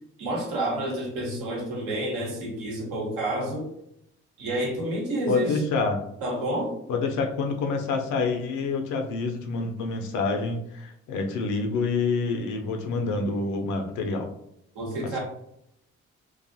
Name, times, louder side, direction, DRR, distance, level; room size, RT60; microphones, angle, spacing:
voice 1, 0.2-3.7 4.4-5.6 6.2-6.7 14.7-15.2, right 1 dB, 70° right, -2 dB, 1.0 m, -29 dB
voice 2, 5.3-6.0 6.9-14.3 15.0-15.2, left 4 dB, 60° left, 4 dB, 0.6 m, -27 dB
2.5 x 2.3 x 2.6 m, 0.77 s
hypercardioid pair, 45°, 34 cm